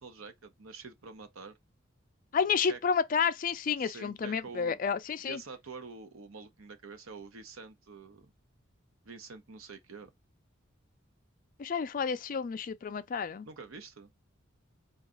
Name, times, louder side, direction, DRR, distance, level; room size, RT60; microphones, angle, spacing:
voice 1, 0.0-1.6 2.7-2.8 3.8-4.8 5.3-8.3 9.0-10.1 13.4-14.1, right 4 dB, 90° right, 0.8 m, -47 dB
voice 2, 2.3-5.4 11.6-13.5, left 6 dB, 40° left, 0.4 m, -30 dB
3.9 x 2.4 x 3.7 m
head